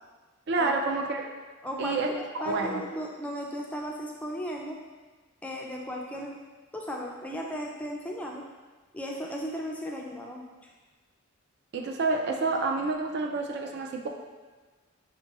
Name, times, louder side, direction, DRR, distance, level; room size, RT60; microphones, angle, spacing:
voice 1, 0.5-1.3 1.8-2.8 11.7-14.1, right 3 dB, 55° right, 3 dB, 0.4 m, -29 dB
voice 2, 1.6-4.8 5.4-6.4 6.7-8.5 8.9-10.7, equal, 5° left, -1 dB, 0.3 m, -36 dB
5.6 x 2.6 x 2.9 m, 1.3 s
head